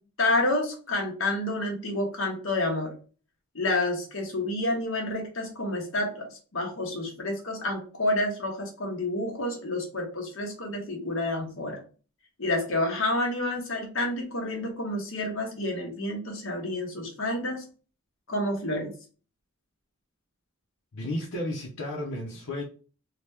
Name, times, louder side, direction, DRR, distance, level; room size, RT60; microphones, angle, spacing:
voice 1, 0.2-2.9 3.5-11.8 12.4-17.6 18.3-18.9, left 2 dB, 60° left, 1 dB, 0.9 m, -29 dB
voice 2, 20.9-22.6, left 1 dB, 90° left, -3 dB, 0.7 m, -33 dB
2.8 x 2.1 x 3.3 m, 0.37 s
head